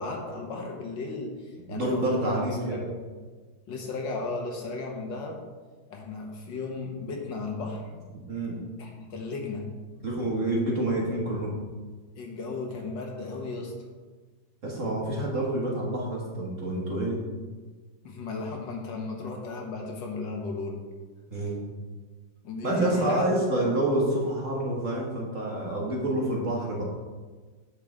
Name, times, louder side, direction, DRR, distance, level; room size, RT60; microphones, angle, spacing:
voice 1, 0.0-2.4 2.7-3.0 3.7-5.4 5.9-7.9 8.8-9.7 12.2-13.7 18.0-20.8 22.4-23.4, left 3 dB, 70° left, 1 dB, 1.9 m, -35 dB
voice 2, 1.7-2.8 8.3-8.6 10.0-11.6 14.6-17.2 21.3-21.6 22.6-26.9, right 1 dB, 40° right, -3 dB, 1.7 m, -27 dB
9.6 x 6.5 x 3.6 m, 1.4 s
omnidirectional pair, 2.1 m